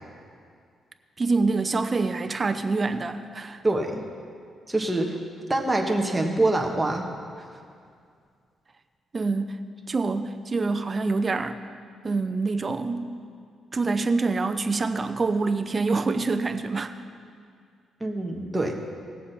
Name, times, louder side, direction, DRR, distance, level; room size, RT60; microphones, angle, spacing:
voice 1, 1.2-3.6 9.1-9.6 9.9-11.6 12.0-13.1 13.7-16.9, right 3 dB, 30° right, 9 dB, 0.6 m, -26 dB
voice 2, 3.6-4.0 4.7-5.2 5.5-7.0 18.0-18.7, right 2 dB, 10° right, 1 dB, 1.5 m, -25 dB
18.0 x 7.5 x 4.3 m, 2.2 s
cardioid pair, 100°, 0 cm